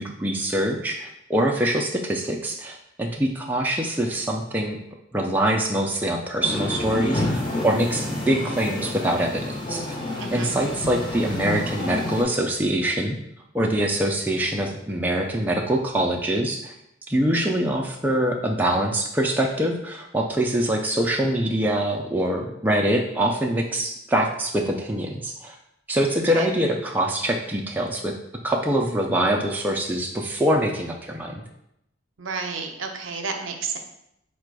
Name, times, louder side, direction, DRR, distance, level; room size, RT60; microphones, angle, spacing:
voice 1, 0.0-4.8 5.1-9.4 9.7-9.8 10.3-13.2 13.5-16.7 17.1-25.6 25.9-28.1 28.4-31.4, right 1 dB, 10° right, 1 dB, 0.3 m, -24 dB
sound 1, 6.4-12.2, left 1 dB, 20° left, 0.8 m, -29 dB
voice 2, 10.2-10.6 26.3-26.5 32.2-33.8, right 5 dB, 65° right, 4 dB, 0.6 m, -31 dB
4.9 x 2.2 x 4.7 m, 0.80 s
head